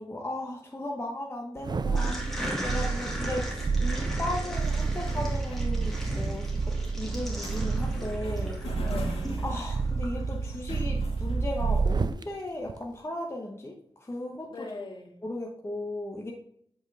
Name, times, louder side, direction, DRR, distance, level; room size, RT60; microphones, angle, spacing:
voice 1, 0.0-2.1 2.6-8.6 9.4-14.7 15.2-16.3, left 1 dB, 25° left, 0 dB, 1.1 m, -36 dB
sound 1, 1.6-12.2 12.7-12.8, right 4 dB, 45° right, 0.4 m, -30 dB
voice 2, 1.7-2.6 8.9-9.4 14.5-15.1, left 3 dB, 55° left, 0 dB, 1.9 m, -41 dB
sound 2, 1.9-10.5, equal, 5° left, 2.0 m, -38 dB
sound 3, 4.5-11.8, left 2 dB, 85° left, 1.4 m, -45 dB
8.2 x 4.7 x 3.4 m, 0.67 s
wide cardioid pair, 80°, 10 cm